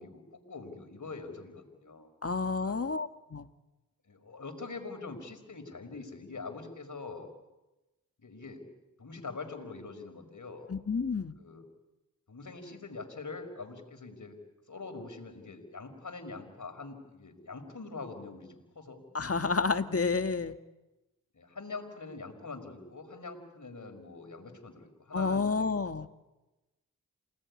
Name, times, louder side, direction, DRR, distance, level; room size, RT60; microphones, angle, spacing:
voice 1, 0.0-2.1 2.6-2.7 4.0-7.3 8.2-8.6 9.0-10.7 11.4-11.7 12.3-14.4 14.7-19.0 19.9-20.0 21.3-25.7, left 3 dB, 60° left, 5 dB, 5.3 m, -44 dB
voice 2, 2.2-3.5 10.7-11.3 19.1-20.6 25.1-26.1, left 4 dB, 45° left, 9 dB, 1.8 m, -30 dB
28.5 x 19.0 x 9.8 m, 1.0 s
cardioid pair, 60°, 34 cm